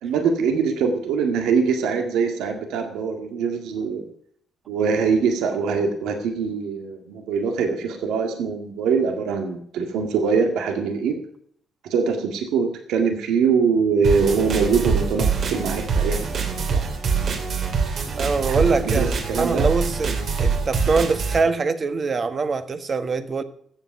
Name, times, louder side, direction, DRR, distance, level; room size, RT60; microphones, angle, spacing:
voice 1, 0.0-4.0 4.7-11.2 11.8-16.8 18.5-19.7, right 5 dB, 90° right, 1.9 m, -23 dB
sound 1, 14.0-21.4, right 5 dB, 65° right, 3.1 m, -24 dB
voice 2, 18.2-23.4, right 4 dB, 40° right, 1.3 m, -23 dB
14.0 x 8.1 x 6.8 m
cardioid pair, 90°, 0 cm